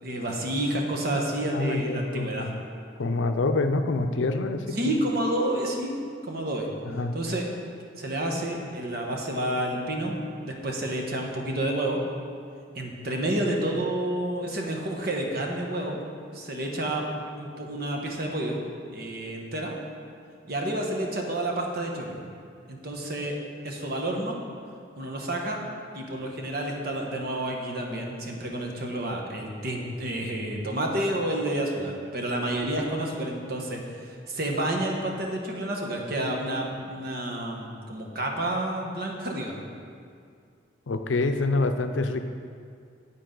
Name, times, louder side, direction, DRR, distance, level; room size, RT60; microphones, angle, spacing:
voice 1, 0.0-2.5 4.7-6.0 6.2-6.7 7.1-7.4 8.0-10.2 10.4-12.0 12.7-16.0 16.3-17.0 17.3-18.6 18.9-19.8 20.5-22.2 22.7-23.3 23.6-24.4 24.9-25.6 25.9-39.6, right 1 dB, 55° right, 0 dB, 1.2 m, -29 dB
voice 2, 1.5-2.6 3.0-4.8 6.9-7.2 40.9-42.2, left 3 dB, 85° left, 8 dB, 0.6 m, -26 dB
9.7 x 8.6 x 3.9 m, 2.2 s
head